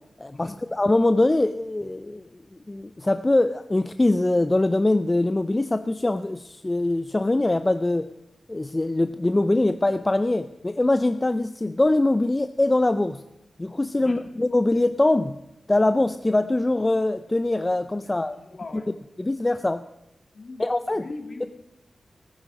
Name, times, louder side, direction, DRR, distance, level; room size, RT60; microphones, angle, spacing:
voice 1, 0.2-2.2 2.7-8.1 8.5-13.2 13.6-15.4 15.7-18.4 19.2-19.8 20.6-21.1, left 2 dB, 20° left, 10 dB, 0.4 m, -23 dB
voice 2, 18.0-18.9 20.3-21.5, left 3 dB, 50° left, 3 dB, 2.2 m, -41 dB
17.5 x 9.9 x 5.1 m, 0.91 s
wide cardioid pair, 110°, 0 cm